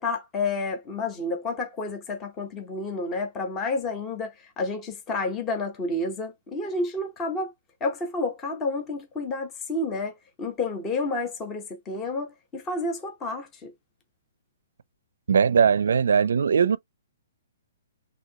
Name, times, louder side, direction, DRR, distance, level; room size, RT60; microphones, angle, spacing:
voice 1, 0.0-7.5 7.8-13.7, left 3 dB, 15° left, 0.8 m, -30 dB
voice 2, 15.3-16.8, right 6 dB, 80° right, 0.5 m, -20 dB
6.2 x 2.7 x 2.9 m
hypercardioid pair, 170°, 0 cm